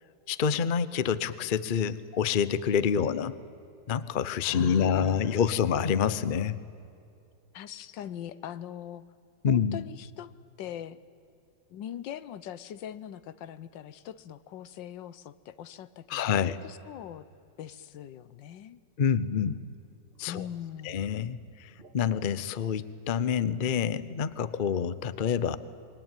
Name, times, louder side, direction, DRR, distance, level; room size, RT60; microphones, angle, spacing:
voice 1, 0.3-3.3 3.9-6.6 9.4-9.8 16.1-16.6 19.0-19.6 20.2-20.5 20.8-25.6, left 7 dB, 45° left, 15 dB, 0.6 m, -27 dB
voice 2, 4.4-5.4 7.5-9.0 9.5-10.3 10.6-11.0 11.7-17.3 17.6-18.8 20.3-21.0, left 10 dB, 80° left, 15 dB, 1.5 m, -42 dB
sound 1, 19.5-19.8 20.1-22.6, right 1 dB, 30° right, 2.1 m, -54 dB
27.0 x 22.5 x 9.1 m, 2.6 s
omnidirectional pair, 2.0 m